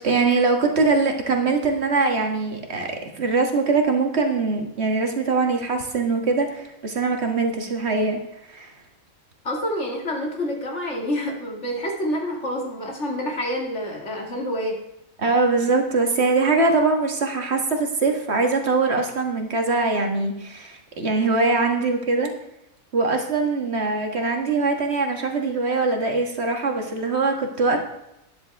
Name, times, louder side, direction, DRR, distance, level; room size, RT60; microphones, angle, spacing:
voice 1, 0.0-8.2 8.5-8.7 15.2-22.3 22.9-27.8, right 3 dB, 50° right, 4 dB, 1.8 m, -22 dB
voice 2, 9.4-14.8, equal, 55° left, 1 dB, 2.5 m, -28 dB
12.5 x 10.5 x 3.5 m, 0.86 s
omnidirectional pair, 1.5 m